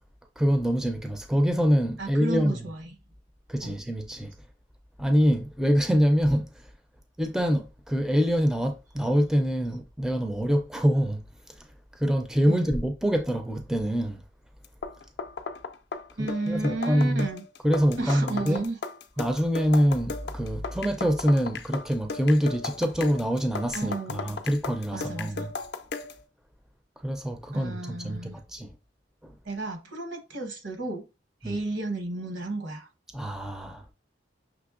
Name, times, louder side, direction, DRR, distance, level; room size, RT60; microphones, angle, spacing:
voice 1, 0.4-2.6 3.5-4.3 5.0-6.5 7.2-11.2 12.0-14.2 16.2-17.3 17.6-18.6 19.2-25.5 27.0-28.7 29.2-29.4 31.4-31.6 33.1-33.8, equal, 5° right, 0.4 m, -25 dB
voice 2, 2.0-3.0 3.6-3.7 12.5-12.7 16.2-17.4 18.0-18.8 23.7-24.3 24.9-25.5 27.5-28.4 29.4-31.0 31.4-32.9, right 2 dB, 80° right, 1.0 m, -33 dB
sound 1, 14.6-26.2, left 4 dB, 60° left, 0.4 m, -36 dB
5.9 x 3.1 x 2.4 m
head